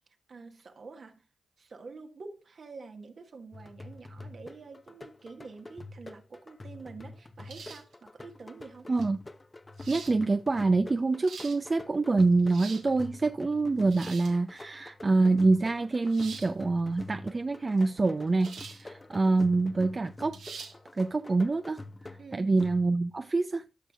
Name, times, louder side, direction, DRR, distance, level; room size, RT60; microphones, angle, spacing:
voice 1, 0.3-1.2 1.6-8.9 22.2-22.6, right 4 dB, 65° right, 1.6 m, -47 dB
sound 1, 3.5-23.2, left 2 dB, 30° left, 0.8 m, -47 dB
sound 2, 7.5-7.9 9.0-9.1 9.8-10.2 11.0-11.6 12.3-12.9 13.8-14.4 16.1-16.5 18.4-18.8 19.2-19.3 20.3-20.7, right 5 dB, 90° right, 1.7 m, -44 dB
voice 2, 9.9-20.4 20.9-21.8 22.3-23.7, right 3 dB, 40° right, 0.6 m, -26 dB
13.0 x 6.4 x 2.4 m
supercardioid pair, 45°, 0 cm